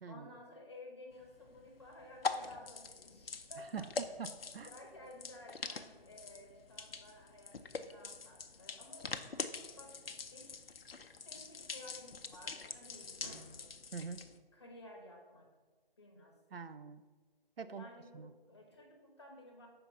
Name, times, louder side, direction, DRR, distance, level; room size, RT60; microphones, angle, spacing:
voice 1, 0.1-4.1 4.7-9.4 9.8-10.0 10.3-10.6 11.2-13.7 14.5-15.5 16.0-16.4 17.6-19.7, left 1 dB, 30° left, 0 dB, 0.8 m, -55 dB
sound 1, 1.1-14.4, left 4 dB, 75° left, 0.5 m, -44 dB
voice 2, 4.2-4.7 13.9-14.3 16.5-17.0 17.6-17.9 18.1-18.3, right 5 dB, 75° right, 11 dB, 0.5 m, -44 dB
sound 2, 9.3-10.8 12.2-12.5 12.9-14.0, right 1 dB, 30° right, 1.3 m, -60 dB
5.1 x 4.3 x 5.4 m, 1.4 s
figure-of-eight pair, 155°, 30 cm